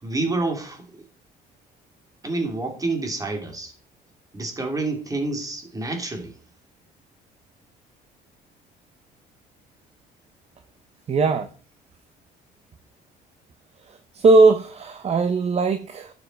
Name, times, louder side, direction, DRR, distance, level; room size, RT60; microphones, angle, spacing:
voice 1, 0.0-1.0 2.2-3.7 4.3-6.4, right 2 dB, 20° right, 3.0 m, -28 dB
voice 2, 11.1-11.5 13.8-16.1, right 3 dB, 40° right, 1.0 m, -19 dB
11.5 x 7.2 x 4.6 m
cardioid pair, 110°, 17 cm